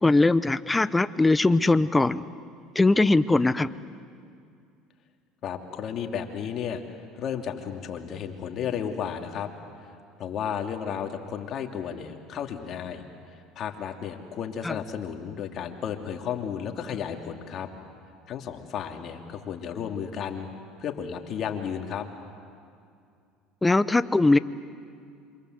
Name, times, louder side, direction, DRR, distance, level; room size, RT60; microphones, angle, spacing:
voice 1, 0.0-2.2 2.7-3.7 14.6-14.7 23.6-24.4, left 2 dB, 15° left, 16 dB, 0.8 m, -21 dB
voice 2, 5.4-6.8 7.1-9.5 10.2-13.0 13.6-17.7 18.3-20.5 20.8-22.0, left 8 dB, 50° left, 4 dB, 2.9 m, -33 dB
27.5 x 26.0 x 8.1 m, 2.4 s
supercardioid pair, 90°, 0 cm